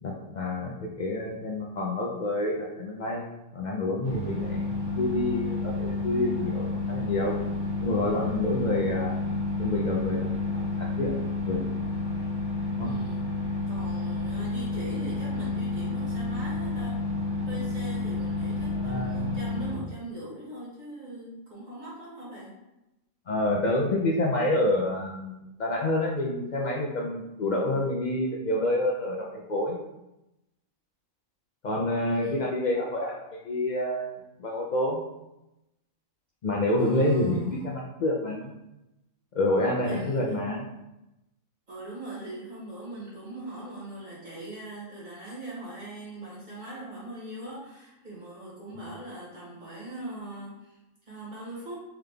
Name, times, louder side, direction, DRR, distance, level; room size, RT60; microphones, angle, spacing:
voice 1, 0.0-3.2 3.5-7.3 7.8-9.1 9.6-11.1 11.5-11.6 12.7-12.9 18.7-19.4 23.3-29.8 31.6-35.0 36.4-38.6 39.3-40.7, left 1 dB, 70° left, -2 dB, 0.4 m, -28 dB
sound 1, 4.0-19.8, left 2 dB, 60° right, 1.5 m, -30 dB
voice 2, 12.8-13.2 13.7-17.0 17.4-22.5 32.1-32.5 36.8-37.6 39.8-40.4 41.7-50.8 51.1-51.8, right 2 dB, 35° right, -7 dB, 1.7 m, -41 dB
3.7 x 3.5 x 3.3 m, 0.93 s
omnidirectional pair, 1.4 m